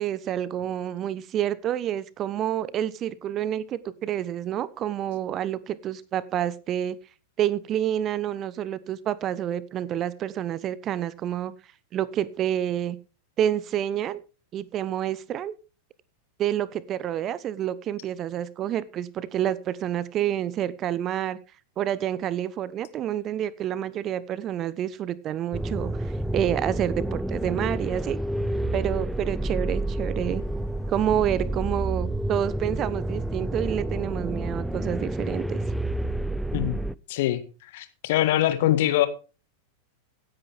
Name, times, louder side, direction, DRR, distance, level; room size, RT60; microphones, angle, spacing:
voice 1, 0.0-7.0 7.4-11.6 11.9-13.0 13.4-14.2 14.5-15.5 16.4-21.4 21.8-28.2 28.7-30.4 30.9-35.6, right 11 dB, 30° right, 19 dB, 0.8 m, -28 dB
sound 1, 25.5-36.9, right 1 dB, 5° right, 0.5 m, -29 dB
voice 2, 37.1-37.4 37.7-39.1, left 14 dB, 50° left, 11 dB, 1.8 m, -23 dB
16.5 x 10.5 x 3.5 m, 0.33 s
figure-of-eight pair, 90°, 0 cm